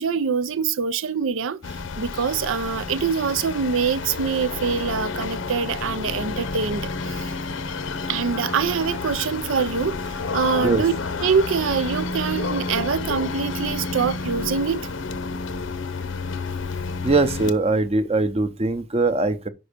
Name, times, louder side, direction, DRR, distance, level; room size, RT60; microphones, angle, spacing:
voice 1, 0.0-7.3 8.1-10.9 11.2-14.9, right 6 dB, 85° right, 0.5 m, -24 dB
sound 1, 1.6-17.5, left 3 dB, 75° left, 0.7 m, -30 dB
voice 2, 17.0-19.5, right 3 dB, 30° right, 0.7 m, -21 dB
5.5 x 5.3 x 5.0 m
head